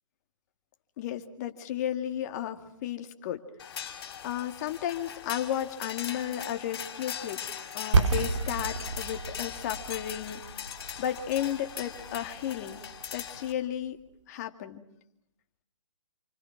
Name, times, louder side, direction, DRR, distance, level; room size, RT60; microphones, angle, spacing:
voice 1, 1.0-3.4 4.2-10.5 11.0-12.8 13.1-14.0 14.3-14.8, left 11 dB, 30° left, 6 dB, 2.4 m, -33 dB
sound 1, 3.6-13.5, left 8 dB, 45° left, 5.2 m, -40 dB
sound 2, 7.9-13.7, right 4 dB, 65° right, 3.2 m, -31 dB
29.5 x 24.5 x 6.1 m, 0.77 s
hypercardioid pair, 155°, 17 cm